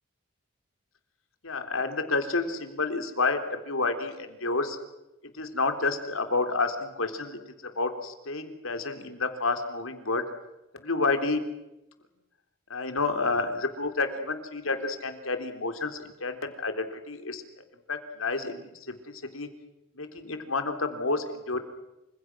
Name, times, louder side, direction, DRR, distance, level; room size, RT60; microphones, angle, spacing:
voice 1, 1.4-4.8 5.3-7.4 7.8-10.2 10.8-11.4 12.7-17.4 17.9-19.0 19.3-19.5 20.0-21.6, left 3 dB, 80° left, 7 dB, 3.7 m, -29 dB
28.5 x 26.5 x 6.3 m, 0.93 s
head